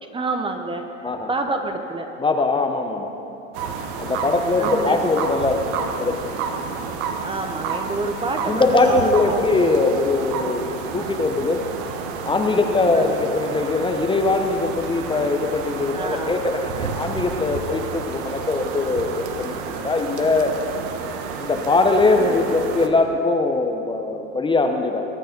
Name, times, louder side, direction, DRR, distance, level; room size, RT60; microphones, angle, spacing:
voice 1, 0.0-2.1 4.6-5.0 6.7-6.8 7.2-9.5 12.9-13.1 15.9-16.5 22.1-22.4, right 3 dB, 15° right, 5 dB, 0.9 m, -28 dB
voice 2, 2.2-3.1 4.0-5.7 6.0-6.2 8.5-11.6 12.2-20.6 21.4-25.0, left 3 dB, 15° left, 4 dB, 0.9 m, -21 dB
sound 1, 3.5-22.9, right 5 dB, 55° right, 1.5 m, -30 dB
22.5 x 9.2 x 5.2 m, 2.8 s
hypercardioid pair, 110°, 39 cm